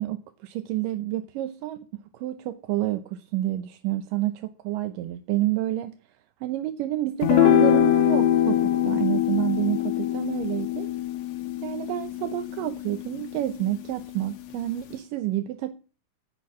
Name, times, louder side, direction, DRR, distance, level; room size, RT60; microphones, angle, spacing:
voice 1, 0.0-5.9 6.4-10.9 11.6-15.7, right 14 dB, 85° right, 2.5 m, -29 dB
sound 1, 7.2-13.8, left 11 dB, 65° left, 2.0 m, -23 dB
14.0 x 6.7 x 7.4 m
omnidirectional pair, 3.8 m